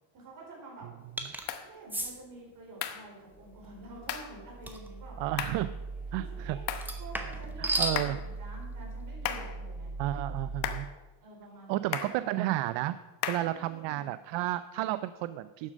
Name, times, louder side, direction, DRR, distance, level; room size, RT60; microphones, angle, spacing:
voice 1, 0.1-0.9 1.6-5.2 6.1-6.7 7.0-9.9 11.2-12.2 13.4-14.1, right 2 dB, 45° right, -2 dB, 4.5 m, -48 dB
sound 1, 1.2-1.5 1.9-2.1 4.7-4.9 6.8-8.0, right 1 dB, 5° right, 0.8 m, -32 dB
sound 2, 1.5-1.7 2.8-3.1 4.1-4.3 5.4-5.7 6.7-7.0 8.0-8.3 9.2-9.6 10.6-10.9 11.9-12.2 13.2-13.6, left 10 dB, 65° left, 1.0 m, -35 dB
sound 3, 3.3-10.8, right 3 dB, 20° right, 4.6 m, -41 dB
voice 2, 5.2-5.8 6.1-6.6 7.6-8.2 10.0-10.9 11.7-13.0 13.3-15.7, right 15 dB, 75° right, 14 dB, 0.5 m, -32 dB
11.5 x 7.4 x 6.3 m, 1.2 s
cardioid pair, 180°, 44 cm